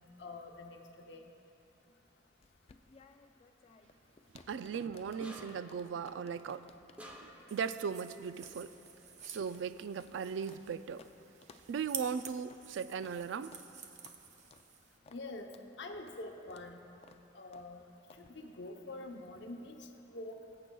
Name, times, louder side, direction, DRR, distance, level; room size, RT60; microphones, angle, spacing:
voice 1, 0.0-1.3 15.1-15.5 15.8-16.8 17.3-17.9 18.2-20.4, left 2 dB, 65° left, 3 dB, 0.8 m, -46 dB
sound 1, 2.4-10.7 11.0-11.1 11.4-11.7 12.0-12.1 12.5-12.7 13.0-13.2 13.5-13.7 14.0-14.2 14.5-14.7 15.1-15.2 15.5-15.7 16.1-16.2 16.5-16.7 17.0-17.2 17.5-17.7 18.1-18.3, left 4 dB, 35° left, 0.3 m, -60 dB
voice 2, 4.5-6.7 7.1-8.7 9.2-11.0 11.7-13.6, right 6 dB, 75° right, 13 dB, 0.3 m, -38 dB
sound 2, 5.2-5.8 7.0-7.5, equal, 5° right, 0.8 m, -50 dB
sound 3, 7.5-15.0, right 7 dB, 40° right, 0.6 m, -50 dB
20.5 x 8.1 x 2.3 m, 2.9 s
head